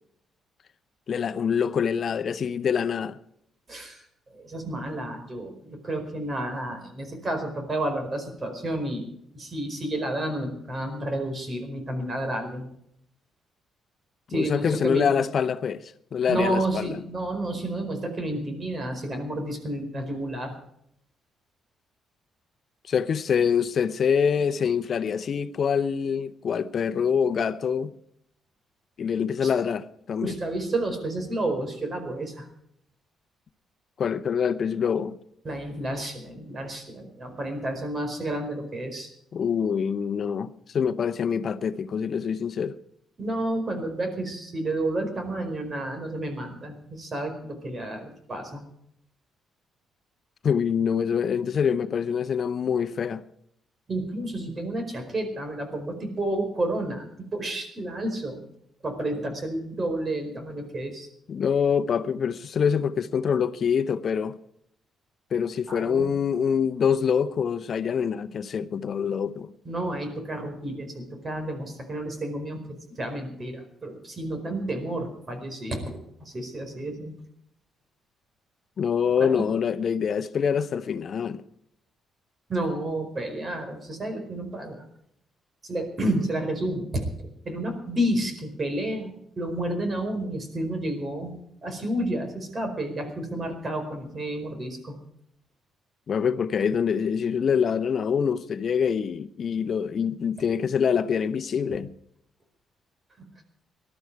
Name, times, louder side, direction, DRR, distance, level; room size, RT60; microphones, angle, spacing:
voice 1, 1.1-3.2 14.3-17.0 22.9-27.9 29.0-30.3 34.0-35.2 39.3-42.8 50.4-53.2 61.3-64.4 65.3-69.5 78.8-81.4 96.1-101.9, left 7 dB, 55° left, 0.8 m, -25 dB
voice 2, 3.7-4.0 4.3-12.7 14.3-15.1 16.3-20.5 29.4-29.5 30.2-32.5 35.4-39.1 43.2-48.6 53.9-58.4 58.8-61.1 65.7-66.0 69.6-72.6 72.9-77.1 79.2-79.5 82.5-84.8 85.6-87.1 87.4-91.3 91.6-95.0 101.7-101.8 103.2-103.3, right 1 dB, 35° right, 4.7 m, -31 dB
19.0 x 12.5 x 4.7 m
cardioid pair, 90°, 0 cm